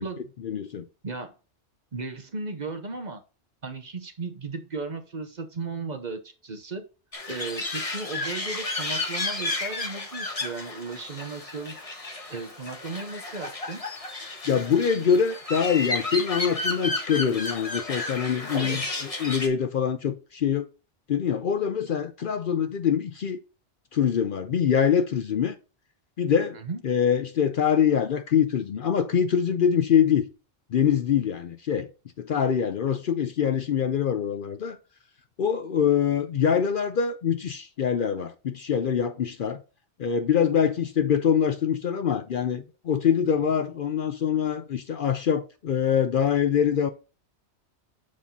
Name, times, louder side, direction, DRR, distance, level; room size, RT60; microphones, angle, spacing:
voice 1, 0.4-0.8 14.5-20.7 21.1-23.4 23.9-25.6 26.2-26.6 26.8-30.3 30.7-31.9 32.2-34.8 35.4-39.6 40.0-46.9, left 8 dB, 55° left, 0.7 m, -24 dB
voice 2, 1.9-3.2 3.6-6.8 7.3-11.8 12.3-13.8 18.5-18.8 26.5-26.8, right 3 dB, 40° right, 1.0 m, -35 dB
sound 1, 7.1-19.5, left 2 dB, 30° left, 1.4 m, -32 dB
7.4 x 4.8 x 4.0 m
omnidirectional pair, 1.2 m